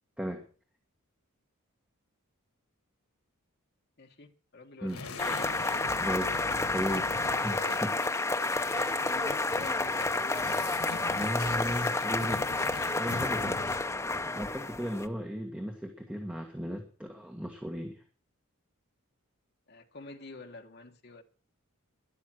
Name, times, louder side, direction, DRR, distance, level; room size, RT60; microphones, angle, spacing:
voice 1, 4.0-5.2 8.8-10.4 19.7-21.2, left 3 dB, 50° left, 5 dB, 1.6 m, -48 dB
sound 1, 4.9-14.0, left 3 dB, 85° left, 1.6 m, -43 dB
sound 2, 5.2-15.1, left 2 dB, 15° left, 0.7 m, -30 dB
voice 2, 6.0-6.4 6.7-7.2 7.4-8.0 11.1-12.6 12.9-13.8 14.3-18.0, equal, 5° right, 2 dB, 1.6 m, -35 dB
sound 3, 8.3-12.2 13.1-13.2 13.5-13.9, right 1 dB, 60° right, 7.7 m, -52 dB
13.0 x 11.5 x 6.2 m, 0.39 s
head